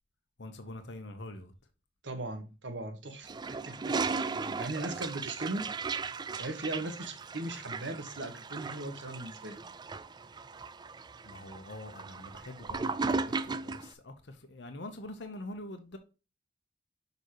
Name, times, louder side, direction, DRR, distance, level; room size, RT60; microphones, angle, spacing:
voice 1, 0.4-1.5 4.3-4.7 11.2-16.0, left 1 dB, 70° left, 1.0 m, -45 dB
voice 2, 2.0-3.9 4.6-5.7 6.3-9.6, right 2 dB, 75° right, 1.5 m, -38 dB
Toilet flush, 3.2-13.9, right 4 dB, 25° right, 0.4 m, -36 dB
6.8 x 5.4 x 3.1 m
head